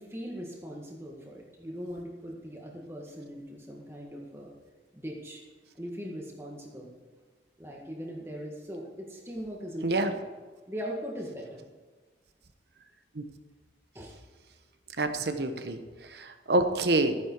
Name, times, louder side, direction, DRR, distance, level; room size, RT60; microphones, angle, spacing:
voice 1, 0.0-4.5 4.9-5.4 5.7-6.9 7.6-10.2 10.7-11.7 13.9-14.2, equal, 15° right, -2 dB, 1.7 m, -40 dB
voice 2, 15.0-15.8 16.1-17.1, right 2 dB, 65° right, 8 dB, 1.0 m, -27 dB
14.0 x 9.5 x 4.6 m, 1.3 s
head